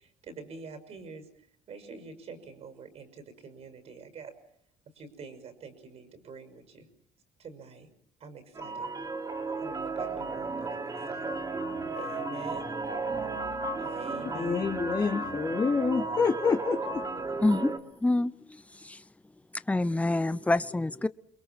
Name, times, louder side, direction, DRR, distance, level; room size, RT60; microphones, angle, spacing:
voice 1, 0.0-4.3 4.9-6.9 7.4-7.9 8.2-8.9 9.6-11.4 12.0-12.7 13.8-14.7, right 5 dB, 55° right, 6.1 m, -46 dB
sound 1, 8.6-17.8, right 3 dB, 30° right, 3.7 m, -34 dB
voice 2, 14.3-17.4, left 5 dB, 35° left, 3.2 m, -28 dB
voice 3, 17.4-17.7 18.0-19.0 19.7-21.1, left 2 dB, 10° left, 1.0 m, -27 dB
29.0 x 22.0 x 6.1 m
supercardioid pair, 85°, 13 cm